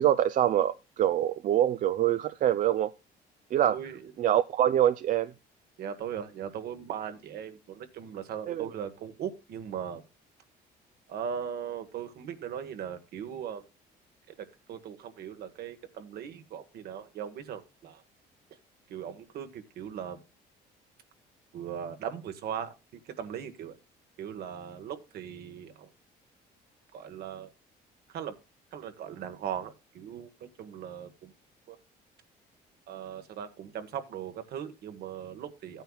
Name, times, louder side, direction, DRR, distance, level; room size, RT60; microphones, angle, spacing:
voice 1, 0.0-2.9 3.5-3.8 4.2-5.3 8.5-8.7, right 11 dB, 50° right, 0.4 m, -25 dB
voice 2, 3.6-4.1 5.8-10.0 11.1-13.6 14.3-18.0 18.9-20.2 21.5-22.7 23.0-23.8 24.2-25.9 26.9-27.5 28.1-28.3 28.7-31.3 31.7-31.8 32.9-35.8, right 8 dB, 70° right, 1.5 m, -39 dB
14.5 x 9.1 x 2.3 m
cardioid pair, 110°, 17 cm